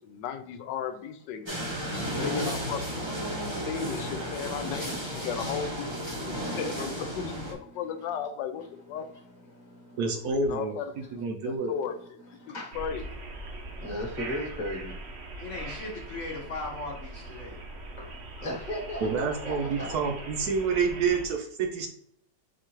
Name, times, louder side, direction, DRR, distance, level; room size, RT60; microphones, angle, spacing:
voice 1, 0.0-1.5 2.2-2.8 3.6-9.1 10.5-10.9 11.4-12.2 12.5-13.0, left 7 dB, 80° left, 9 dB, 1.2 m, -35 dB
sound 1, 1.5-7.5, equal, 25° right, 0.7 m, -33 dB
voice 2, 1.7-2.5 2.9-3.0 5.2-7.0 7.3-8.3 8.5-10.2 11.0-12.8 13.8-15.0 18.0-18.1 18.4-20.0, left 1 dB, 30° left, -1 dB, 1.0 m, -40 dB
voice 3, 10.0-10.7 11.1-11.7 19.0-21.9, right 4 dB, 70° right, 3 dB, 1.1 m, -28 dB
sound 2, 12.7-21.3, right 2 dB, 55° right, 0.8 m, -41 dB
voice 4, 15.4-17.6, left 2 dB, 60° left, 0 dB, 0.9 m, -38 dB
4.5 x 2.4 x 4.5 m, 0.67 s
omnidirectional pair, 1.9 m